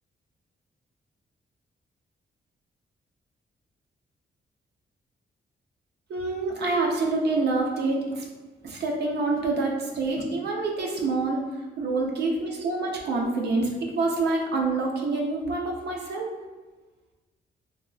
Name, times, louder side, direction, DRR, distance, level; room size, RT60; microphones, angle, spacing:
voice 1, 6.1-8.3 8.6-16.3, right 3 dB, 70° right, 0 dB, 0.6 m, -27 dB
2.9 x 2.8 x 2.3 m, 1.3 s
cardioid pair, 100°, 17 cm